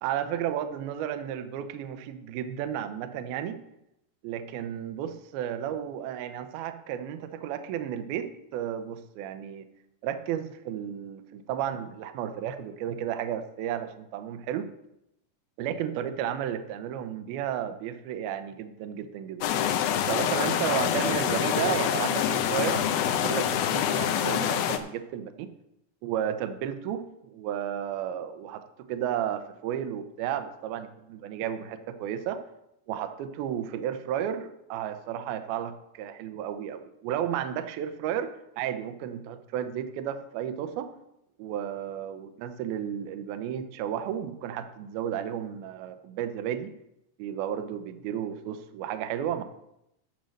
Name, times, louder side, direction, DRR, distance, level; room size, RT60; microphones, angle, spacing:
voice 1, 0.0-3.6 4.2-9.7 10.0-14.7 15.6-19.6 20.1-25.5 26.0-28.6 28.9-32.4 32.9-38.3 38.6-40.9 41.4-46.7 47.2-49.4, right 10 dB, 75° right, 9 dB, 2.4 m, -33 dB
sound 1, 19.4-24.8, left 10 dB, 80° left, 2.2 m, -26 dB
10.0 x 7.0 x 6.5 m, 0.83 s
omnidirectional pair, 5.0 m